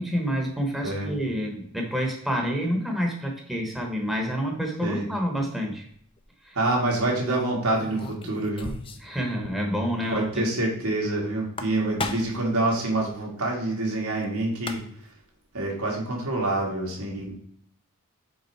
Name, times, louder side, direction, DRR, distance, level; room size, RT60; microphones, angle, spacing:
voice 1, 0.0-5.9 6.4-6.6 9.0-10.5, equal, ahead, 0 dB, 1.0 m, -28 dB
voice 2, 0.8-1.1 4.8-5.0 6.5-8.7 10.1-14.8 15.5-17.3, right 2 dB, 90° right, -2 dB, 1.8 m, -26 dB
sound 1, 5.9-6.2 7.7-9.2 9.4-9.5 9.8-9.9 11.4-12.5 14.2-14.3 14.5-15.1, left 3 dB, 25° left, 0.4 m, -35 dB
5.2 x 4.0 x 4.6 m, 0.65 s
head